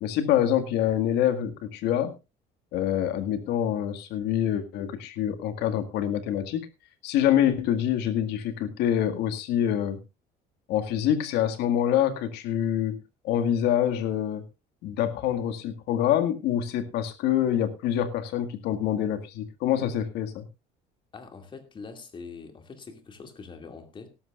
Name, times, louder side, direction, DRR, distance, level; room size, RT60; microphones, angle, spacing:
voice 1, 0.0-2.1 2.7-6.7 7.0-10.0 10.7-14.4 14.8-20.5, left 10 dB, 70° left, 2.0 m, -26 dB
voice 2, 21.1-24.1, left 4 dB, 25° left, 2.5 m, -43 dB
17.5 x 13.0 x 2.5 m
cardioid pair, 135°, 18 cm